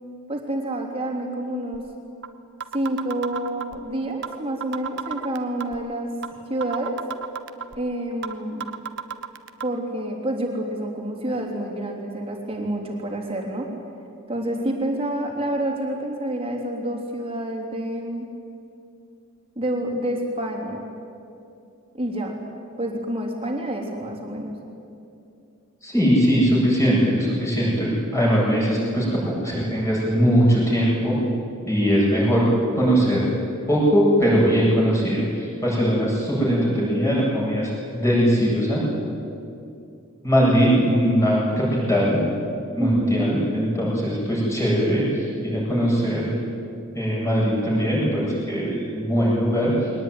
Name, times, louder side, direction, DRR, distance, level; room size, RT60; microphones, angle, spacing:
voice 1, 0.3-1.8 2.7-6.1 6.5-7.0 7.8-8.7 9.6-13.7 14.3-18.3 19.5-20.8 21.9-22.3 22.8-24.5 42.8-43.2, right 1 dB, 25° right, 1 dB, 3.3 m, -28 dB
sound 1, 1.7-1.8 2.2-2.3 2.6-3.8 4.2-4.4 4.6-5.8 6.2-6.3 6.6-7.8 8.2-8.3 8.6-9.6, right 7 dB, 55° right, 1.1 m, -31 dB
voice 2, 25.8-31.2 31.6-32.5 32.7-33.3 33.7-38.8 40.2-42.2 42.8-46.4 46.9-49.9, equal, 15° left, -6 dB, 8.0 m, -20 dB
22.0 x 19.0 x 9.6 m, 2.6 s
head